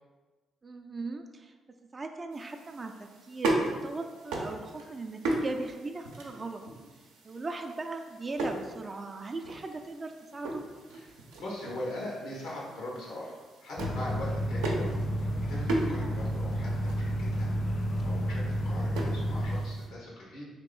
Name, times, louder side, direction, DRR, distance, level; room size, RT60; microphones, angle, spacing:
voice 1, 0.6-1.5 1.9-6.6 7.2-10.6 16.0-16.2, right 3 dB, 35° right, 5 dB, 0.3 m, -39 dB
sound 1, 2.3-19.9, right 2 dB, 90° right, 0.5 m, -37 dB
voice 2, 10.9-13.4 13.6-17.5 18.0-20.5, left 1 dB, 80° left, -4 dB, 1.1 m, -41 dB
sound 2, 13.8-19.6, equal, 45° left, 0.4 m, -31 dB
3.0 x 2.8 x 3.8 m, 1.3 s
supercardioid pair, 55°, 0 cm